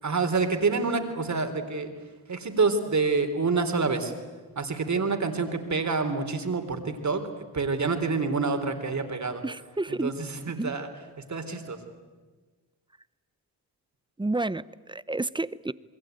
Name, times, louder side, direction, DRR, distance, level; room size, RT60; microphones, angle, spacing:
voice 1, 0.0-1.9 2.3-4.1 4.6-7.2 7.5-9.4 9.9-10.9 11.2-11.8, right 4 dB, 45° right, 3.7 m, -27 dB
voice 2, 9.4-10.2 10.6-10.7 14.2-15.7, right 2 dB, 10° right, 0.8 m, -30 dB
28.0 x 21.5 x 9.3 m
cardioid pair, 60°, 38 cm